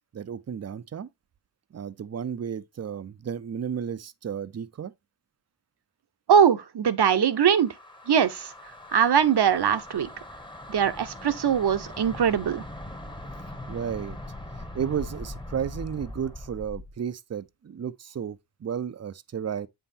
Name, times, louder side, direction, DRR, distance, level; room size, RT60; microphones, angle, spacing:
voice 1, 0.1-1.1 1.7-4.9 13.7-14.2 14.7-19.7, right 8 dB, 35° right, 0.5 m, -33 dB
voice 2, 6.3-7.7 8.1-8.5 8.9-10.1 10.7-12.6, right 8 dB, 60° right, 0.9 m, -21 dB
sound 1, 7.2-17.0, left 1 dB, 10° left, 1.0 m, -41 dB
7.7 x 5.6 x 2.7 m
cardioid pair, 75°, 45 cm